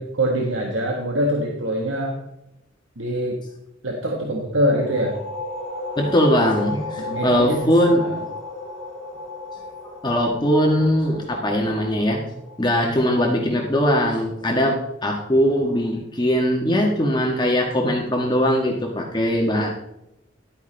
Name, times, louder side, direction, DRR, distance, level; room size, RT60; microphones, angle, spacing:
voice 1, 0.0-2.2 3.0-3.4 3.8-5.2 7.0-7.6 7.9-8.2, equal, 90° right, 0 dB, 1.6 m, -24 dB
sound 1, 4.6-14.0, left 2 dB, ahead, 3.7 m, -34 dB
voice 2, 6.0-8.0 10.0-12.2 12.6-19.7, equal, 20° left, 0 dB, 1.5 m, -20 dB
12.0 x 9.3 x 3.4 m, 0.83 s
head